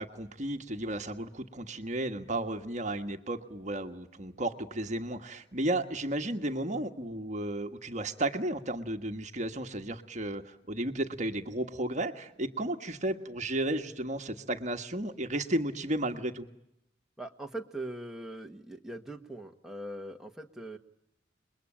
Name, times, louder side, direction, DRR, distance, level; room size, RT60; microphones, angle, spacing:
voice 1, 0.0-16.5, right 1 dB, 40° right, 6 dB, 1.5 m, -33 dB
voice 2, 17.2-20.8, right 1 dB, 5° right, 2 dB, 1.6 m, -41 dB
29.5 x 21.5 x 8.9 m, 0.84 s
head